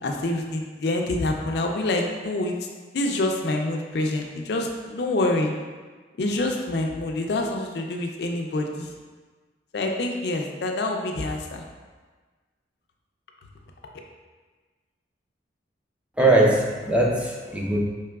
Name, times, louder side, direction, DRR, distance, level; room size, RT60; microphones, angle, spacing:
voice 1, 0.0-2.6 2.9-5.5 6.2-8.9 9.7-11.6, left 2 dB, 65° left, 2 dB, 0.4 m, -26 dB
voice 2, 16.2-17.8, right 2 dB, 5° right, -2 dB, 0.4 m, -20 dB
4.7 x 3.0 x 2.3 m, 1.4 s
head